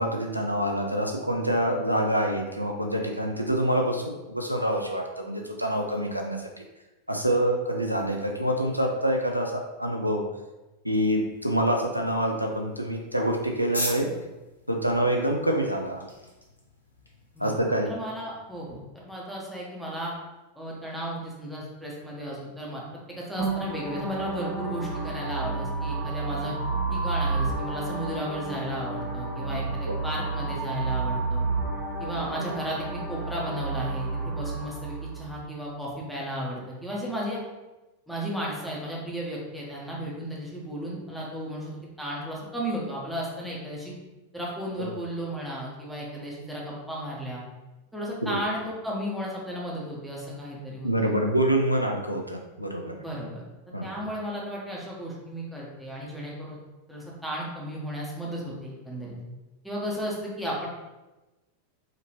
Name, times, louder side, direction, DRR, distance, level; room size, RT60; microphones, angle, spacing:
voice 1, 0.0-6.5 7.1-10.2 10.8-14.1 14.7-16.0 17.4-17.9 29.9-30.0 44.8-44.9 48.2-48.4 50.8-52.9 53.7-53.9, right 1 dB, 90° right, 2 dB, 0.4 m, -26 dB
sound 1, 10.9-18.0, left 1 dB, 80° left, 0.7 m, -41 dB
voice 2, 17.3-20.1 20.5-26.6 26.9-31.5 32.0-37.4 38.1-41.7 42.0-43.9 44.3-47.4 47.9-51.2 52.9-53.4 53.8-56.6 56.9-59.2 59.6-60.7, equal, ahead, -5 dB, 1.2 m, -34 dB
sound 2, 23.4-35.3, right 3 dB, 30° right, 0.9 m, -31 dB
5.0 x 2.9 x 2.9 m, 1.1 s
figure-of-eight pair, 90°, 0 cm